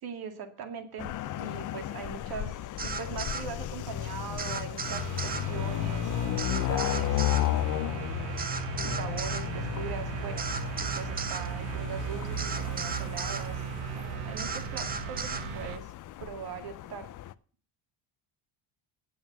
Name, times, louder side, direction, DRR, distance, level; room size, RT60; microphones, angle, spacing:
voice 1, 0.0-8.1 8.8-10.5 10.8-13.6 14.0-15.9 16.2-17.1, right 6 dB, 50° right, 7 dB, 2.1 m, -41 dB
sound 1, 1.0-17.3, left 14 dB, 40° left, 0.5 m, -34 dB
sound 2, 2.8-3.5 4.4-5.5 6.4-7.5 8.4-9.5 10.4-11.5 12.4-13.5 14.4-15.5, right 4 dB, 20° right, 0.8 m, -35 dB
sound 3, 4.8-15.8, right 9 dB, 85° right, 1.4 m, -37 dB
9.3 x 7.7 x 8.0 m, 0.41 s
cardioid pair, 165°, 48 cm